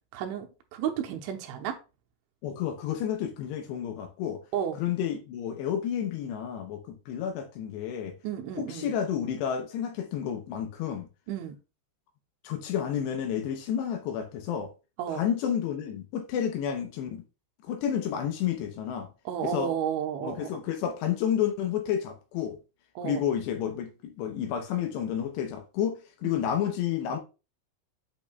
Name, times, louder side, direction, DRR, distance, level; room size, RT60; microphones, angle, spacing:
voice 1, 0.1-0.5 0.7-1.8 4.5-4.8 8.2-8.9 11.3-11.6 15.0-15.2 19.3-20.6 23.0-23.2 26.2-26.5, right 9 dB, 85° right, 3.2 m, -32 dB
voice 2, 2.4-4.4 4.8-8.2 8.6-11.1 12.4-14.7 15.1-17.2 17.6-19.1 19.4-19.7 20.2-22.6 23.0-27.2, left 9 dB, 75° left, 2.7 m, -30 dB
8.5 x 6.2 x 2.2 m
omnidirectional pair, 5.4 m